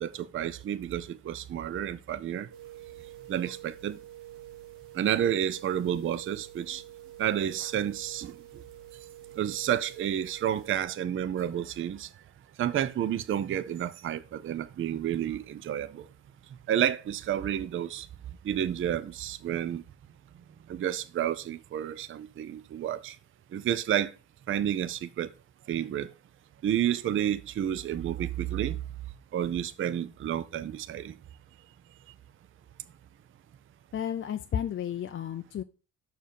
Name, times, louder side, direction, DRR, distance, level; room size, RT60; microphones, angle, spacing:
voice 1, 0.0-2.5 3.3-4.0 5.0-6.8 7.2-8.3 9.4-12.1 12.6-16.0 16.7-18.1 18.4-19.8 20.7-23.2 23.5-24.1 24.5-25.3 25.7-26.1 26.6-28.8 29.3-31.1, right 10 dB, 30° right, 0.4 m, -30 dB
sound 1, 2.5-10.8, right 12 dB, 80° right, 1.6 m, -48 dB
voice 2, 33.9-35.6, left 9 dB, 30° left, 0.4 m, -32 dB
6.2 x 4.7 x 5.1 m
cardioid pair, 125°, 40 cm